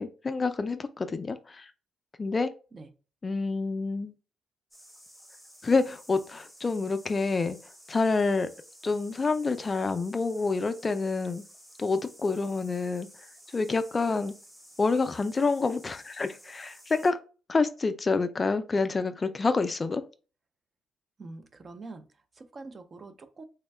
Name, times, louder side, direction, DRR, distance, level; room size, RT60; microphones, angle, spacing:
voice 1, 0.0-1.7 2.2-2.5 3.2-4.1 5.6-7.6 7.9-8.5 8.8-11.4 11.8-13.1 13.5-14.3 14.8-17.2 17.5-20.0, left 4 dB, 30° left, 10 dB, 0.3 m, -27 dB
sound 1, 4.7-17.1, equal, 5° right, 0.9 m, -53 dB
voice 2, 21.2-23.4, right 3 dB, 40° right, 9 dB, 0.5 m, -45 dB
3.4 x 2.2 x 3.1 m, 0.35 s
cardioid pair, 90°, 0 cm